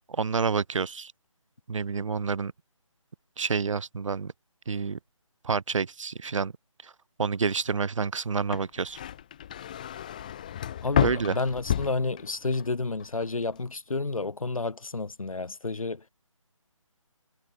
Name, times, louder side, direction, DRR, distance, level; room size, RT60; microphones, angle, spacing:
voice 1, 0.1-1.1 1.7-2.5 3.4-4.3 4.7-5.0 5.4-6.5 6.8-6.9 7.2-9.0 11.0-11.4, right 5 dB, 65° right, 0.5 m, -28 dB
sound 1, 8.4-12.7 13.0-13.6, left 10 dB, 15° left, 0.5 m, -31 dB
voice 2, 10.8-16.0, left 3 dB, 80° left, 1.0 m, -30 dB
figure-of-eight pair, 155°, 17 cm